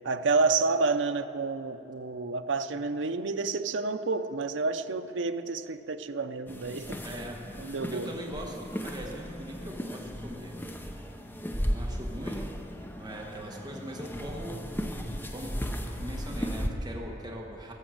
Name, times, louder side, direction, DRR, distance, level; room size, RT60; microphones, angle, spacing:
voice 1, 0.0-7.0 7.6-8.1, right 3 dB, 75° right, 9 dB, 0.6 m, -29 dB
sound 1, 6.5-16.7, equal, 10° left, 0.7 m, -36 dB
voice 2, 7.0-7.4 7.9-10.5 11.7-12.5 13.0-14.7 15.3-15.5 15.9-17.7, equal, 20° right, -1 dB, 1.3 m, -41 dB
17.5 x 7.1 x 7.6 m, 2.7 s
head